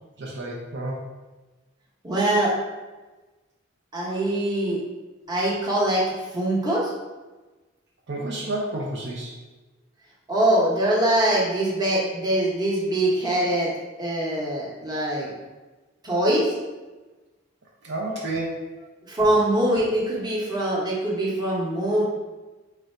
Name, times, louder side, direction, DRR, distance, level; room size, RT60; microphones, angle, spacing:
voice 1, 0.2-1.0 8.1-9.3 17.8-18.6, right 1 dB, 65° right, -2 dB, 0.6 m, -30 dB
voice 2, 2.0-2.5 3.9-4.8 5.3-6.0 6.3-6.9 10.3-13.7 14.0-15.3 16.0-16.5 19.1-22.0, right 1 dB, 20° right, -5 dB, 0.9 m, -23 dB
3.2 x 2.5 x 4.3 m, 1.2 s
head